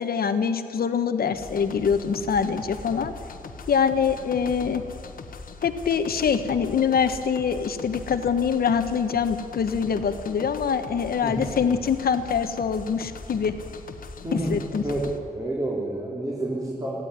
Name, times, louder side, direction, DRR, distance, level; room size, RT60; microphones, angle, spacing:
voice 1, 0.0-3.1 3.7-4.8 5.6-13.5 14.3-14.8, left 6 dB, 85° left, 8 dB, 1.4 m, -24 dB
sound 1, 1.3-15.2, left 4 dB, 70° left, 1.5 m, -40 dB
voice 2, 14.2-15.1 15.3-17.0, right 1 dB, 20° right, -6 dB, 4.0 m, -29 dB
21.5 x 15.5 x 9.8 m, 2.4 s
wide cardioid pair, 150°, 15 cm